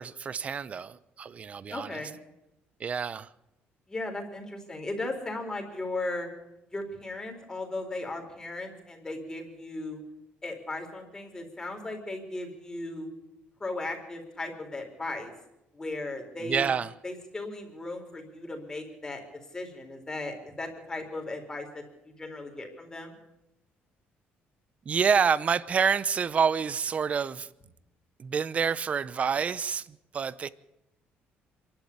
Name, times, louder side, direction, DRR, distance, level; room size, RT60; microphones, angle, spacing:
voice 1, 0.0-2.0 2.8-3.3 16.4-16.9 24.9-27.5 28.2-30.5, right 6 dB, 35° right, 0.8 m, -28 dB
voice 2, 1.7-2.1 3.9-6.3 6.7-10.0 10.4-13.1 13.6-15.3 15.7-16.7 17.0-19.2 19.5-23.1, left 2 dB, 15° left, 4.2 m, -36 dB
26.0 x 11.5 x 8.8 m
cardioid pair, 145°, 4 cm